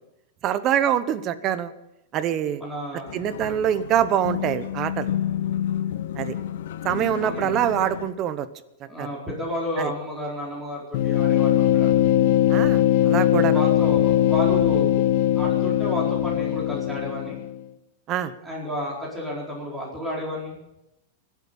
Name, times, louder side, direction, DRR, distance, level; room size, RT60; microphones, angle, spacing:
voice 1, 0.4-1.7 2.1-2.6 3.1-5.1 6.1-6.3 6.8-8.5 9.0-9.1 9.8-9.9 12.5-13.6 18.1-18.3, right 10 dB, 30° right, 13 dB, 1.0 m, -24 dB
voice 2, 2.6-3.2 7.2-7.6 8.8-11.9 13.4-15.0 15.3-17.4 18.4-20.6, equal, 10° right, -5 dB, 4.7 m, -32 dB
sound 1, 3.1-8.1, left 10 dB, 75° left, 0.8 m, -30 dB
sound 2, 10.9-17.6, left 12 dB, 60° left, 1.5 m, -20 dB
25.0 x 8.5 x 5.6 m, 0.87 s
supercardioid pair, 150°, 0 cm